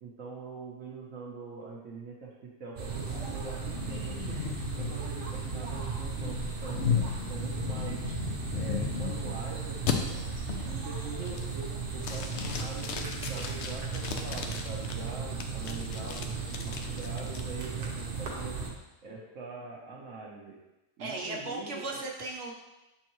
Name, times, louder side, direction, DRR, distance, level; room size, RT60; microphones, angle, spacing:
voice 1, 0.0-4.4 4.8-8.1 8.5-10.3 10.6-16.3 16.6-18.6 19.0-20.6 21.0-22.0, right 4 dB, 85° right, -3 dB, 1.2 m, -43 dB
sound 1, 2.8-18.7, right 5 dB, 50° right, 1.0 m, -36 dB
sound 2, 3.0-9.4 9.9-10.0 10.5-10.8 11.2-11.7 12.0-14.9 15.4-17.4, left 7 dB, 70° left, 0.8 m, -36 dB
voice 2, 21.0-22.5, right 2 dB, 70° right, -1 dB, 1.3 m, -36 dB
7.2 x 4.3 x 3.0 m, 1.0 s
omnidirectional pair, 1.3 m